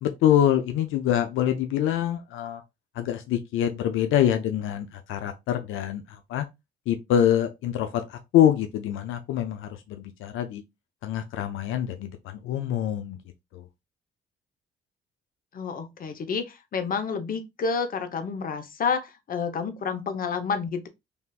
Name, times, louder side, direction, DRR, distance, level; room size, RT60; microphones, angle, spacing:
voice 1, 0.0-2.6 3.0-6.5 6.9-10.6 11.0-13.2 13.5-13.6, left 10 dB, 80° left, 0.5 m, -25 dB
voice 2, 15.5-20.9, left 5 dB, 45° left, 0.7 m, -29 dB
3.4 x 2.5 x 2.3 m
cardioid pair, 90°, 20 cm